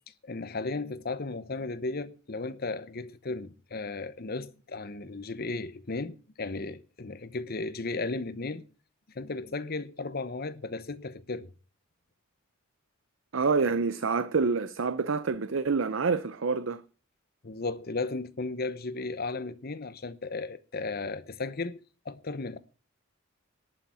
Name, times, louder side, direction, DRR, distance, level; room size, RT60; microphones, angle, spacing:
voice 1, 0.2-8.6 9.1-11.5 17.4-21.8 22.0-22.6, left 3 dB, 45° left, 0.9 m, -35 dB
voice 2, 13.3-16.8, right 4 dB, 65° right, 0.6 m, -27 dB
11.5 x 6.7 x 9.0 m
head